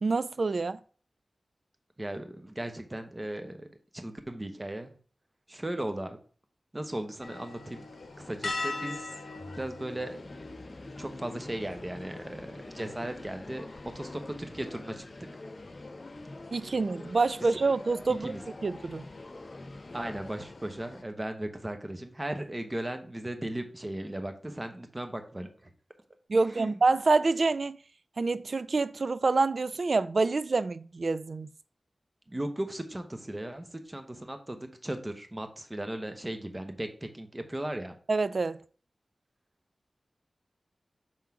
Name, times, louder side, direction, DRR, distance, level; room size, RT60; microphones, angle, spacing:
voice 1, 0.0-0.8 16.5-18.4 18.6-19.0 26.3-27.8 28.2-31.5 38.1-38.6, right 3 dB, 65° right, 0.3 m, -27 dB
voice 2, 2.0-3.7 3.9-4.9 5.5-6.2 6.7-7.8 8.2-9.1 9.5-10.2 11.0-13.7 13.9-15.3 18.2-18.4 19.9-25.7 26.3-26.8 32.3-38.0, right 1 dB, 25° right, 0.9 m, -37 dB
sound 1, 7.2-21.0, left 3 dB, 70° left, 0.8 m, -44 dB
sound 2, 9.4-20.3, left 2 dB, 40° left, 0.5 m, -46 dB
5.8 x 3.7 x 4.8 m
wide cardioid pair, 65°, 0 cm